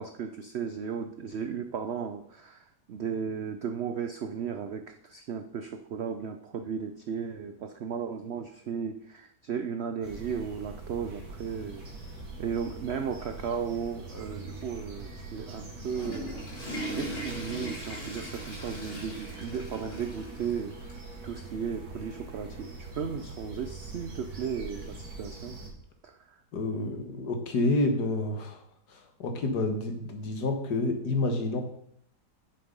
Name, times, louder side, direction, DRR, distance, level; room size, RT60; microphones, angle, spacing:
voice 1, 0.0-11.8 12.4-16.3 16.9-25.6 26.0-26.4, right 7 dB, 80° right, 8 dB, 0.5 m, -35 dB
sound 1, 10.0-25.7, right 3 dB, 65° right, 2.2 m, -43 dB
Water / Toilet flush, 15.6-20.6 20.9-21.0 21.7-21.8 23.1-23.2, right 1 dB, 90° left, 3.6 m, -39 dB
voice 2, 26.5-28.6 28.9-31.6, left 2 dB, 70° left, 5 dB, 1.9 m, -29 dB
7.6 x 6.7 x 5.3 m, 0.71 s
omnidirectional pair, 1.8 m